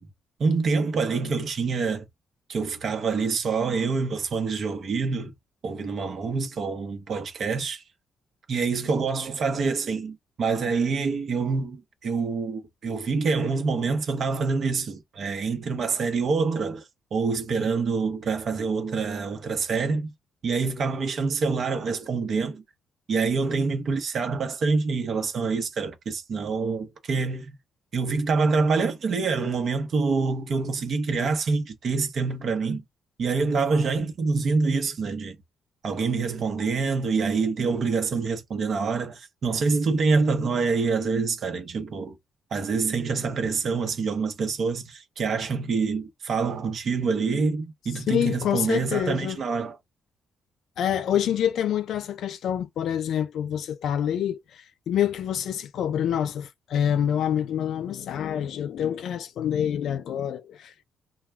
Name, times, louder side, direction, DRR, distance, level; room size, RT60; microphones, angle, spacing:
voice 1, 0.4-2.1 2.5-5.3 5.6-7.8 8.5-16.8 17.1-20.1 20.4-22.6 23.1-27.6 27.9-32.8 33.2-35.4 35.8-42.2 42.5-49.8, right 4 dB, 55° right, 0.9 m, -26 dB
voice 2, 48.1-49.4 50.8-60.8, left 9 dB, 70° left, 0.4 m, -27 dB
2.3 x 2.2 x 3.3 m
cardioid pair, 90°, 0 cm